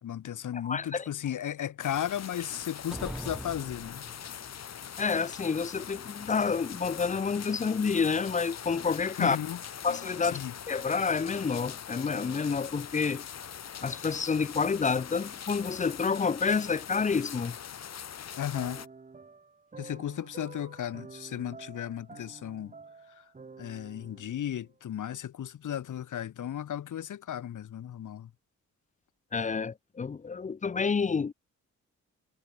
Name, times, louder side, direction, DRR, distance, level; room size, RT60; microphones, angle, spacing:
voice 1, 0.0-4.1 9.2-9.6 10.2-10.6 18.4-18.8 19.8-22.7 23.2-23.3 23.6-28.3, left 10 dB, 80° left, 3.4 m, -35 dB
voice 2, 0.5-1.0 5.0-9.4 9.8-13.2 13.8-17.6 29.3-31.3, left 5 dB, 25° left, 0.6 m, -29 dB
sound 1, 1.8-18.9, left 8 dB, 60° left, 2.9 m, -42 dB
sound 2, 2.9-4.5, equal, ahead, 4.9 m, -41 dB
sound 3, 18.5-24.9, right 4 dB, 25° right, 3.0 m, -50 dB
wide cardioid pair, 155°, 30 cm